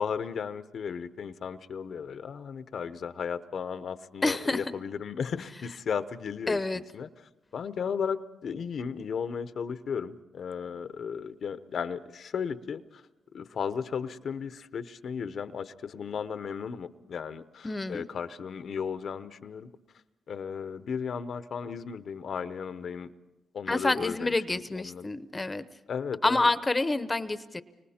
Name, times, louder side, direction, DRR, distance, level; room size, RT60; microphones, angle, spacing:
voice 1, 0.0-13.0 13.3-19.7 20.3-23.1 23.5-25.1 25.9-26.5, left 6 dB, 65° left, 12 dB, 0.8 m, -35 dB
voice 2, 4.2-4.6 6.5-6.8 17.6-18.0 23.7-25.6 26.2-27.6, left 2 dB, 25° left, 13 dB, 0.8 m, -28 dB
30.0 x 25.0 x 4.3 m, 1.0 s
cardioid pair, 75°, 0 cm